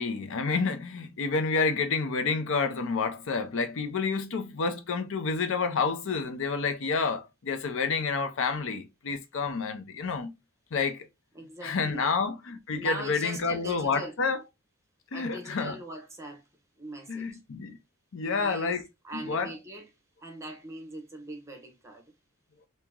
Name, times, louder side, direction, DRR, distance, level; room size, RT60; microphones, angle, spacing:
voice 1, 0.0-10.3 10.7-11.1 11.6-14.4 15.1-15.8 17.1-17.8 18.1-18.8 19.1-19.5, left 4 dB, 65° left, 0.6 m, -29 dB
voice 2, 11.3-12.1 12.8-14.1 15.1-16.4 16.8-17.4 18.2-19.9 20.2-22.0, right 1 dB, 15° right, 1.0 m, -41 dB
2.9 x 2.8 x 3.5 m
head